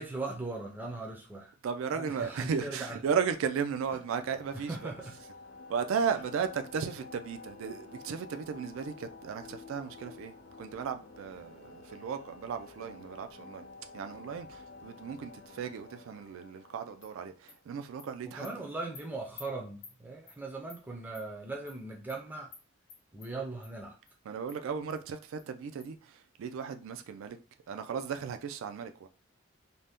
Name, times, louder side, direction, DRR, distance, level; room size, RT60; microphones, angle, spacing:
voice 1, 0.0-1.5 1.9-3.0 4.5-5.2 18.2-22.5 23.1-24.0, right 2 dB, 10° right, 0.4 m, -39 dB
voice 2, 1.6-4.9 5.7-13.7 13.9-18.5 24.3-27.4 27.7-29.1, right 6 dB, 75° right, 0.3 m, -35 dB
sound 1, 4.2-17.7, left 3 dB, 55° left, 0.5 m, -51 dB
Animal, 17.0-17.1 17.5-17.6 18.0-18.1 18.4-18.5 18.9-19.0 19.4-19.5 19.8-19.9 20.3-20.4 20.7-20.8 21.1-21.2 21.7-21.8 22.1-22.2 22.5-22.6 22.9-23.3 23.6-23.7 24.1-24.2 24.5-24.6 24.9-25.0 25.4-25.5 25.8-25.9, left 5 dB, 85° left, 0.8 m, -50 dB
2.6 x 2.1 x 3.4 m
head